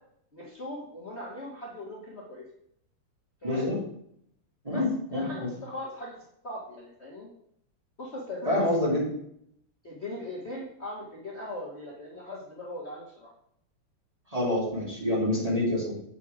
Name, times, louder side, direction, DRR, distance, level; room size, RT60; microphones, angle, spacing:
voice 1, 0.3-2.4 3.4-3.7 4.7-4.8 5.1-6.1 6.4-7.3 8.0-8.7 9.8-13.3, left 1 dB, 35° left, -5 dB, 1.6 m, -39 dB
voice 2, 3.4-3.8 4.6-5.5 8.5-9.0 14.3-15.9, left 1 dB, 15° right, -5 dB, 2.6 m, -27 dB
8.1 x 5.9 x 4.9 m, 0.71 s
omnidirectional pair, 2.4 m